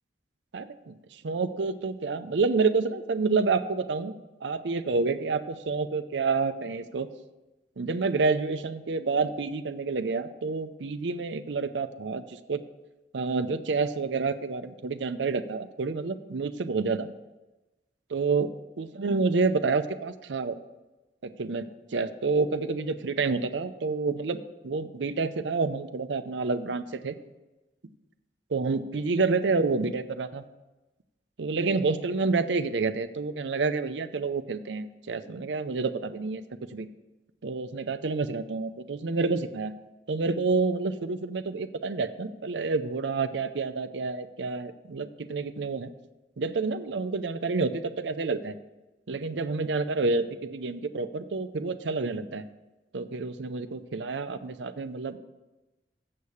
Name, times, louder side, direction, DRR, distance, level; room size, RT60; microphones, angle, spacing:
voice 1, 0.5-4.1 4.4-7.1 7.8-12.6 13.1-17.1 18.1-18.5 18.8-20.6 21.2-27.2 28.5-30.4 31.4-36.4 36.7-36.9 37.4-39.7 40.1-45.9 46.4-48.5 49.1-52.5 52.9-55.2, right 4 dB, 90° right, 11 dB, 0.6 m, -28 dB
7.6 x 6.5 x 7.0 m, 1.1 s
head